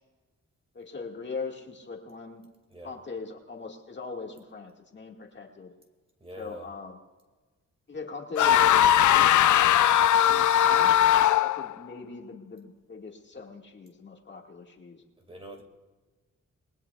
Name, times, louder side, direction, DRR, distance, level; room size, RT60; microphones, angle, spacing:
voice 1, 0.7-2.4 2.8-5.7 6.3-7.0 7.9-9.5 10.3-11.1 11.4-15.0, left 4 dB, 35° left, 1 dB, 1.8 m, -40 dB
voice 2, 6.2-6.7 15.2-15.6, right 1 dB, 20° right, 3 dB, 2.1 m, -44 dB
sound 1, 8.4-11.7, left 11 dB, 80° left, 0.5 m, -20 dB
29.0 x 20.5 x 2.3 m, 1.3 s
wide cardioid pair, 165°, 30 cm